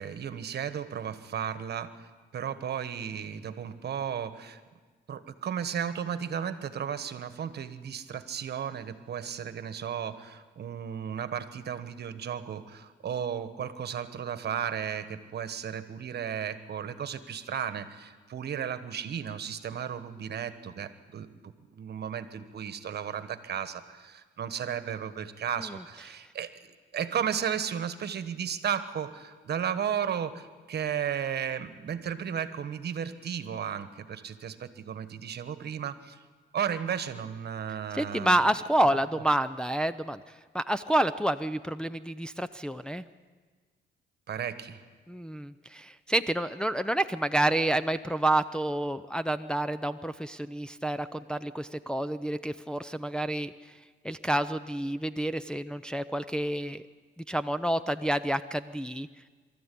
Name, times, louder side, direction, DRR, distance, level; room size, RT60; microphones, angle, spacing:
voice 1, 0.0-4.6 5.1-36.2 36.5-38.4 38.8-39.0 44.3-44.8, right 8 dB, 55° right, 11 dB, 1.3 m, -34 dB
voice 2, 38.0-40.2 40.5-43.0 45.1-53.5 54.0-56.8 57.3-59.1, right 1 dB, 5° left, 8 dB, 0.6 m, -29 dB
23.5 x 13.5 x 8.5 m, 1.4 s
cardioid pair, 90°, 20 cm